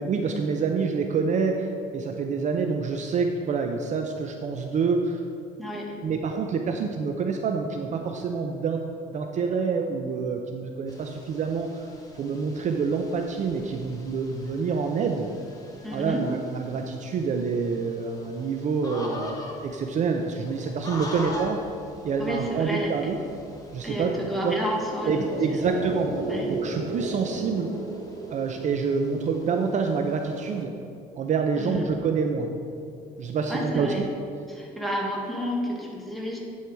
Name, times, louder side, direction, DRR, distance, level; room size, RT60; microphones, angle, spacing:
voice 1, 0.0-5.2 6.0-8.8 9.1-11.8 12.2-15.3 15.9-21.6 22.0-23.2 23.7-24.2 24.4-24.6 25.1-27.7 28.3-30.7 31.2-32.5 33.2-34.0, right 5 dB, 45° right, 4 dB, 0.5 m, -27 dB
voice 2, 5.6-5.9 15.8-16.2 22.2-22.9 23.8-25.8 26.3-26.5 31.6-31.8 33.5-34.0 34.5-36.4, equal, ahead, -3 dB, 1.6 m, -31 dB
sound 1, 10.9-30.6, left 1 dB, 20° left, 1.3 m, -44 dB
sound 2, 24.6-29.2 29.4-29.5, right 3 dB, 65° right, 1.2 m, -33 dB
10.0 x 4.7 x 4.6 m, 2.5 s
cardioid pair, 110°, 17 cm